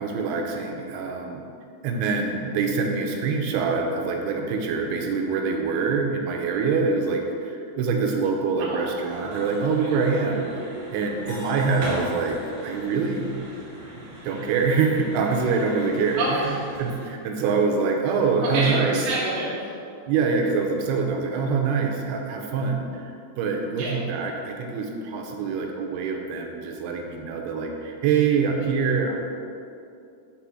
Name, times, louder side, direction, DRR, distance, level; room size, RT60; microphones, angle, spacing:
voice 1, 0.0-1.4 1.8-12.4 12.6-13.3 13.9-16.4 16.8-19.0 20.1-29.2, right 5 dB, 85° right, 2 dB, 2.6 m, -25 dB
voice 2, 8.6-9.0 16.2-16.6 18.4-19.7 23.8-24.0, right 2 dB, 50° right, -6 dB, 2.0 m, -27 dB
sound 1, 9.0-17.1, right 1 dB, 70° right, 3.0 m, -38 dB
sound 2, 11.3-15.2, equal, 85° left, 3.7 m, -43 dB
7.6 x 3.3 x 6.2 m, 2.5 s
omnidirectional pair, 4.5 m